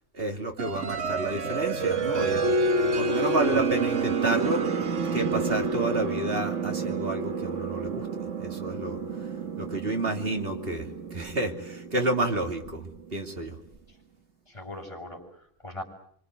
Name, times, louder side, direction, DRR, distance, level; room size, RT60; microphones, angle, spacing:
voice 1, 0.1-4.6 5.1-8.1 8.4-13.6, right 2 dB, 50° right, 3 dB, 3.0 m, -30 dB
sound 1, 0.6-13.1, right 4 dB, 80° right, 1.7 m, -29 dB
voice 2, 14.5-15.8, left 1 dB, 25° left, 0 dB, 6.7 m, -40 dB
25.5 x 25.5 x 8.0 m, 0.63 s
omnidirectional pair, 1.2 m